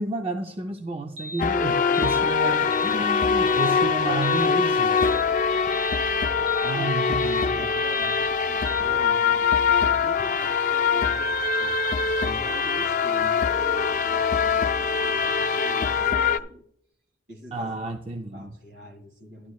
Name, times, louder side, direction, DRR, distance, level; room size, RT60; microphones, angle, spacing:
voice 1, 0.0-5.0 6.6-7.7 17.5-18.5, right 2 dB, 30° right, 4 dB, 0.5 m, -31 dB
sound 1, 1.2-1.5 1.9-2.2 2.7-3.0 3.5-3.7 4.2-4.5 5.0-5.3 5.7-6.0 6.5-6.7 7.2-7.5 7.9-8.2 8.7-8.8, equal, 80° right, 1.9 m, -38 dB
sound 2, 1.4-16.4, left 5 dB, 40° left, 0.4 m, -23 dB
sound 3, 2.3-16.1, left 2 dB, 20° left, 0.8 m, -47 dB
voice 2, 3.5-4.0 6.4-11.8 12.2-16.7 17.3-17.8 18.2-19.5, equal, 60° right, 4 dB, 2.2 m, -43 dB
11.5 x 11.0 x 2.4 m, 0.70 s
head